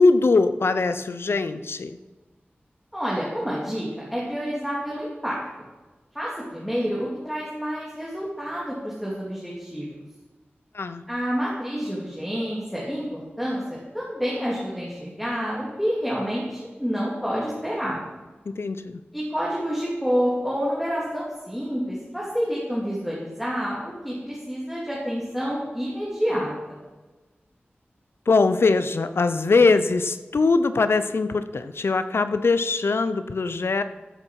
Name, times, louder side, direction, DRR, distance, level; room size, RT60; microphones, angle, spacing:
voice 1, 0.0-2.0 10.7-11.0 18.5-19.0 28.3-33.8, left 3 dB, 80° left, 11 dB, 0.6 m, -21 dB
voice 2, 2.9-5.4 6.1-9.9 11.1-18.0 19.1-26.8, equal, ahead, -6 dB, 2.7 m, -28 dB
14.0 x 8.0 x 4.7 m, 1.2 s
wide cardioid pair, 75°, 4 cm